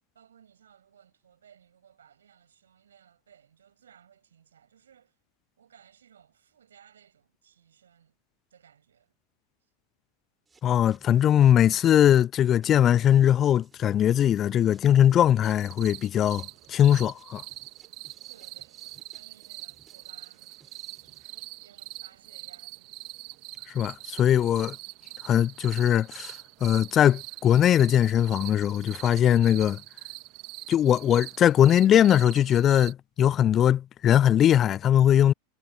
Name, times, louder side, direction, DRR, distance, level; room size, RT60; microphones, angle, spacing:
voice 1, 0.1-5.2 5.6-8.2 8.5-9.1 18.3-20.6 20.9-21.3 21.6-22.9, right 8 dB, 80° right, 7.2 m, -59 dB
sound 1, 10.5-21.3, right 4 dB, 15° right, 5.3 m, -62 dB
voice 2, 10.6-17.4 23.7-24.8 25.2-26.3 26.6-29.8 30.7-35.3, left 10 dB, 35° left, 0.3 m, -21 dB
sound 2, 15.4-32.9, right 25 dB, 50° right, 1.5 m, -44 dB
hypercardioid pair, 90°, 0 cm